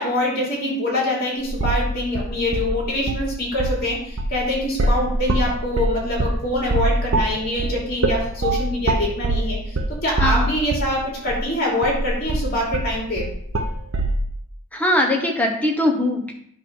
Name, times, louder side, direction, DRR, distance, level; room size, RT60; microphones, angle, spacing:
voice 1, 0.0-9.8 10.0-13.2, left 1 dB, 45° left, -3 dB, 2.9 m, -24 dB
sound 1, 1.5-1.9 2.2-3.3 3.5-3.9 4.2-11.0 11.3-11.4 11.8-14.2, right 2 dB, 60° right, 0.8 m, -23 dB
voice 2, 10.2-10.5 14.7-16.3, left 1 dB, 5° left, 1 dB, 1.1 m, -21 dB
9.3 x 3.4 x 6.3 m, 0.68 s
head